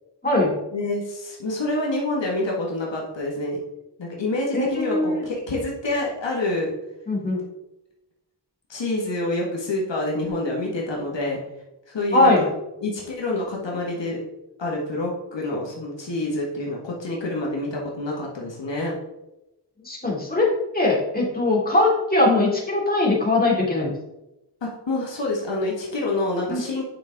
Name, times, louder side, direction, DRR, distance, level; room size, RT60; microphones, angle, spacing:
voice 1, 0.7-3.6 4.0-6.7 8.7-11.4 11.9-12.5 12.8-14.2 14.6-18.9 24.6-26.8, left 2 dB, 80° left, -2 dB, 1.9 m, -27 dB
voice 2, 4.5-5.2 7.1-7.4 12.1-12.4 19.8-20.5 20.7-23.9 26.5-26.6, left 2 dB, 20° left, -4 dB, 2.7 m, -20 dB
9.7 x 5.5 x 3.6 m, 0.93 s
wide cardioid pair, 90°, 43 cm